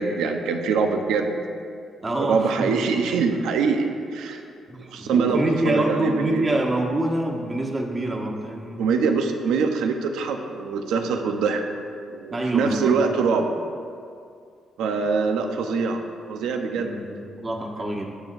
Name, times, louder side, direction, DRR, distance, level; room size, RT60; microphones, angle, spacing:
voice 1, 0.0-1.4 2.2-4.4 4.9-6.4 8.8-11.6 12.1-13.5 14.8-16.0 16.3-17.5, right 5 dB, 90° right, 5 dB, 0.8 m, -24 dB
voice 2, 2.0-2.7 4.7-8.9 12.3-13.0 16.7-18.1, right 1 dB, 30° right, 0 dB, 1.6 m, -26 dB
20.0 x 7.3 x 2.6 m, 2.3 s
cardioid pair, 90°, 0 cm